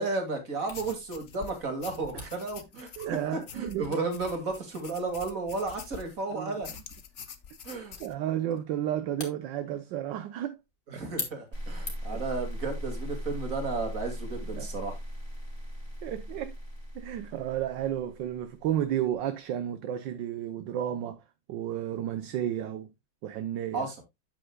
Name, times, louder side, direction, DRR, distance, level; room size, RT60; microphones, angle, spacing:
voice 1, 0.0-3.1 3.5-6.7 7.6-8.0 10.9-15.0 23.7-24.0, right 3 dB, 40° right, 2.7 m, -33 dB
sound 1, 0.7-6.2 6.6-8.1, left 7 dB, 50° left, 0.9 m, -46 dB
Camera, 0.7-12.3, left 2 dB, 25° left, 2.5 m, -46 dB
voice 2, 3.0-4.0 6.3-6.6 8.0-10.6 10.9-11.0 12.1-12.2 14.5-14.7 16.0-16.6 16.9-21.2 21.5-22.9 23.2-23.9, right 11 dB, 70° right, 1.4 m, -32 dB
sound 2, 11.5-18.7, equal, 15° right, 2.2 m, -38 dB
9.0 x 8.8 x 2.3 m
omnidirectional pair, 2.2 m